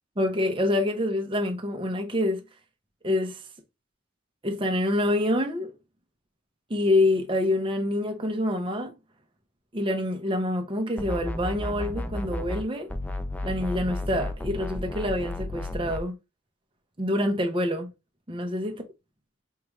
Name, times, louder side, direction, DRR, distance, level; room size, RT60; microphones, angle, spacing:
voice 1, 0.2-2.4 3.0-3.4 4.4-5.7 6.7-8.9 9.7-12.9 13.4-16.2 17.0-17.9 18.3-18.8, left 1 dB, 25° right, 0.7 m, -26 dB
sound 1, 11.0-12.6 12.9-16.0, left 1 dB, 10° left, 0.3 m, -33 dB
4.6 x 2.5 x 3.1 m
head